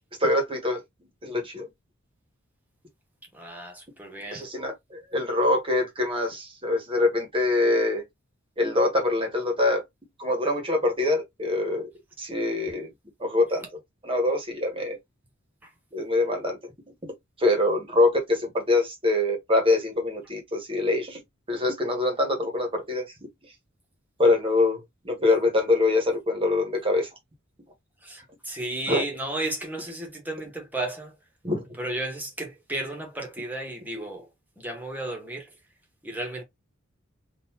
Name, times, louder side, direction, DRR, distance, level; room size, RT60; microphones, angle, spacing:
voice 1, 0.2-0.8 1.2-1.7 4.3-8.0 8.6-9.8 10.2-11.9 12.2-12.9 13.2-13.6 14.0-15.0 15.9-16.6 17.0-17.1 17.4-21.2 21.5-23.1 24.2-24.8 25.0-27.1 28.9-29.0 31.4-31.6, left 2 dB, 25° right, 1.2 m, -24 dB
voice 2, 3.3-4.5 15.6-15.7 28.0-31.1 31.8-34.3 34.6-35.5 36.0-36.4, right 1 dB, 10° right, 1.3 m, -33 dB
3.8 x 2.6 x 2.8 m
head